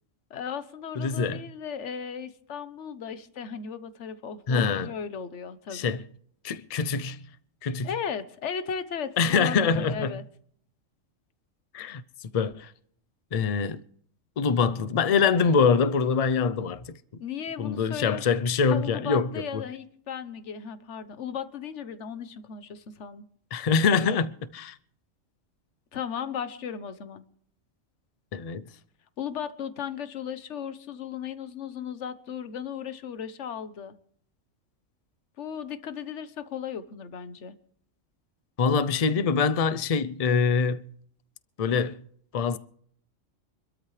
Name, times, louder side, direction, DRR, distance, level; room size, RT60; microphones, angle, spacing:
voice 1, 0.3-6.0 7.8-10.2 17.2-18.2 18.7-23.2 25.9-27.2 29.2-34.0 35.4-37.5, left 7 dB, 65° left, 1.3 m, -36 dB
voice 2, 1.0-1.4 4.5-4.9 5.7-6.0 6.4-7.2 7.6-7.9 9.2-10.1 11.7-12.0 12.3-12.7 13.3-13.8 14.4-17.2 17.6-19.6 23.5-24.7 28.3-28.7 38.6-40.9 41.6-42.0 42.3-42.6, left 5 dB, 40° left, 0.5 m, -24 dB
26.0 x 13.0 x 3.3 m
omnidirectional pair, 1.4 m